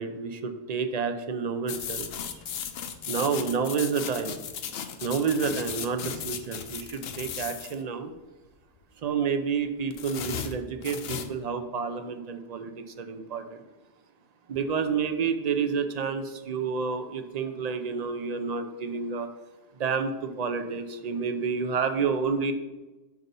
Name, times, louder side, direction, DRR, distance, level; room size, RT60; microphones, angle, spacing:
voice 1, 0.0-2.1 3.1-4.4 5.0-8.1 9.0-13.6 14.5-19.3 19.8-22.5, right 5 dB, 50° right, 8 dB, 0.5 m, -29 dB
sound 1, 1.7-7.8 9.9-11.3, left 8 dB, 75° left, 0.8 m, -36 dB
6.0 x 3.9 x 5.3 m, 1.1 s
omnidirectional pair, 1.0 m